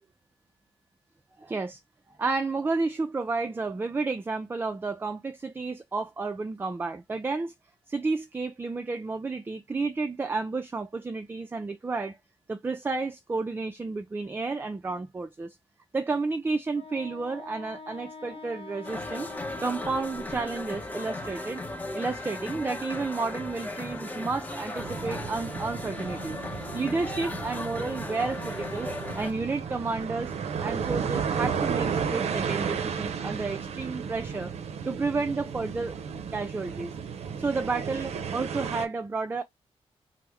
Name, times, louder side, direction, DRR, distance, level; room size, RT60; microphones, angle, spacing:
voice 1, 1.4-1.8 2.2-7.5 7.9-12.2 12.5-15.6 15.9-19.3 19.6-21.6 21.9-26.4 26.7-28.9 29.2-30.3 30.6-34.5 34.9-36.0 36.3-37.0 37.4-39.4, right 3 dB, 20° right, 0.3 m, -31 dB
Wind instrument woodwind instrument, 16.7-21.4, left 4 dB, 60° left, 0.7 m, -46 dB
sound 1, 18.8-29.3, left 2 dB, 15° left, 0.7 m, -36 dB
sound 2, 24.8-38.9, right 6 dB, 75° right, 0.5 m, -33 dB
3.0 x 2.0 x 3.3 m
cardioid pair, 105°, 11 cm